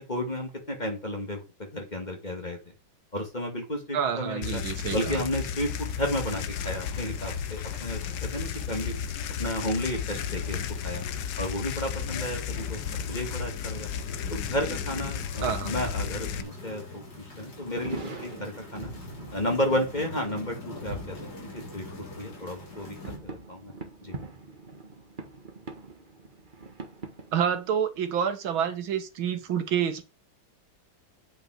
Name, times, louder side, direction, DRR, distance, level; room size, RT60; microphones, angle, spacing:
voice 1, 0.0-2.6 3.1-4.6 4.9-8.9 9.4-11.0 11.4-13.9 14.3-18.9 19.3-21.2 21.4-23.0 23.2-23.7 24.0-24.2, left 1 dB, 20° left, 2.2 m, -32 dB
voice 2, 3.9-5.2 15.4-15.9 27.3-30.0, right 8 dB, 85° right, 2.1 m, -28 dB
sound 1, 4.4-16.4, left 8 dB, 70° left, 1.4 m, -33 dB
sound 2, 4.6-23.2, left 2 dB, 55° left, 3.8 m, -45 dB
sound 3, 17.3-27.6, right 3 dB, 25° right, 1.5 m, -43 dB
8.9 x 5.6 x 6.4 m
omnidirectional pair, 2.1 m